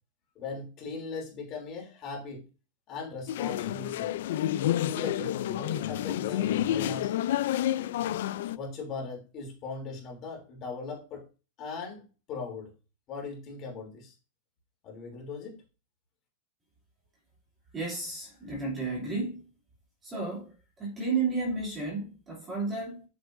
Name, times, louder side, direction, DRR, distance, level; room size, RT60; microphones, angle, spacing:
voice 1, 0.3-2.4 2.9-4.1 4.8-7.1 8.4-11.2 11.6-12.0 12.3-12.7 13.1-14.1 14.8-15.6, left 4 dB, 25° left, 3.0 m, -39 dB
sound 1, 3.3-8.6, left 12 dB, 60° left, 0.4 m, -29 dB
voice 2, 17.7-19.4 20.0-23.0, right 3 dB, 15° right, 2.8 m, -32 dB
7.7 x 7.2 x 2.6 m
supercardioid pair, 170°, 0 cm